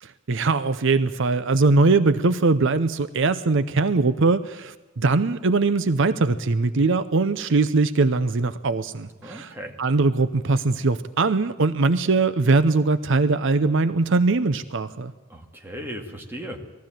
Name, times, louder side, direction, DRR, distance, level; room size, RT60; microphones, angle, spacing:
voice 1, 0.0-9.5 9.8-15.1, right 3 dB, 60° right, 13 dB, 0.7 m, -21 dB
voice 2, 9.2-9.8 15.3-16.6, equal, 10° right, 2 dB, 2.2 m, -36 dB
20.5 x 15.0 x 9.0 m, 1.2 s
head